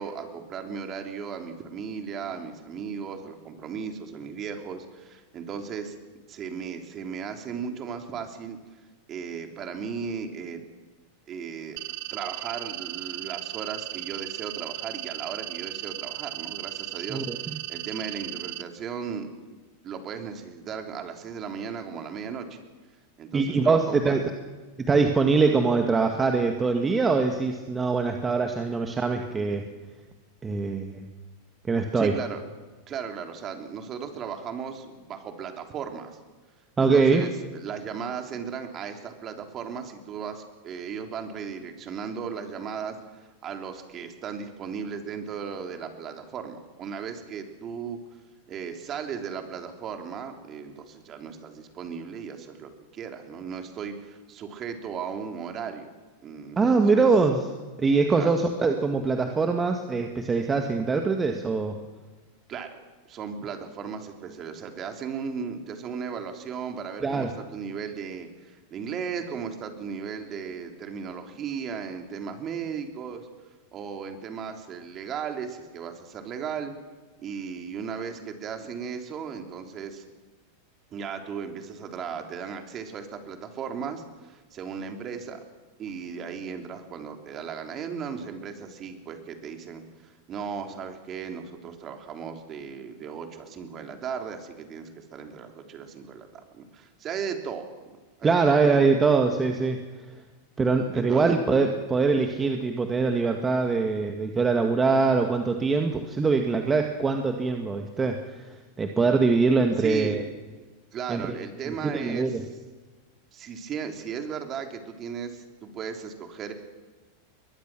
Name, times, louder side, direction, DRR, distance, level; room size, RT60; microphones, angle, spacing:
voice 1, 0.0-6.0 6.3-8.6 9.1-10.6 11.3-11.8 12.1-19.3 19.8-22.6 23.2-24.2 31.9-32.4 32.9-36.2 36.8-48.0 48.5-55.9 56.2-57.1 58.1-58.3 62.5-62.8 63.1-73.3 73.7-76.7 77.2-80.0 80.9-85.4 85.8-96.3 96.5-98.8 100.9-101.2 109.8-110.2 110.9-112.5 113.3-116.5, right 6 dB, 35° right, 5 dB, 3.4 m, -36 dB
sound 1, 11.8-18.6, right 18 dB, 55° right, 0.8 m, -36 dB
voice 2, 17.1-17.6 23.3-24.2 24.9-29.7 30.4-31.0 31.7-32.2 36.8-37.3 56.6-57.5 57.8-61.8 67.0-67.3 98.2-99.8 100.6-108.5 108.8-110.2 111.1-111.3 111.8-112.4, right 4 dB, 20° right, 4 dB, 1.9 m, -23 dB
22.5 x 21.0 x 6.2 m, 1.3 s
hypercardioid pair, 100°, 0 cm